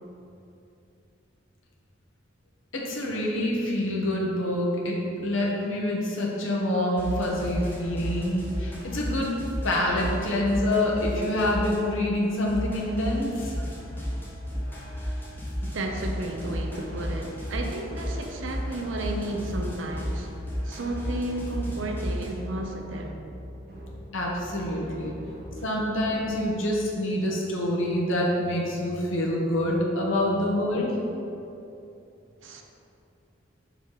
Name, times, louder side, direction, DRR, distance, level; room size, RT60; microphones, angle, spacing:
voice 1, 2.7-9.3 9.6-13.6 24.1-25.1 25.6-30.9, left 1 dB, 85° left, -3 dB, 1.1 m, -26 dB
sound 1, 7.0-12.0 12.5-22.3, equal, 10° left, 1.0 m, -33 dB
voice 2, 15.6-20.3 20.6-23.2 32.4-32.6, right 2 dB, 70° right, 3 dB, 0.7 m, -33 dB
sound 2, 19.1-26.5, equal, 50° right, 1.2 m, -43 dB
5.5 x 4.1 x 4.7 m, 2.8 s
head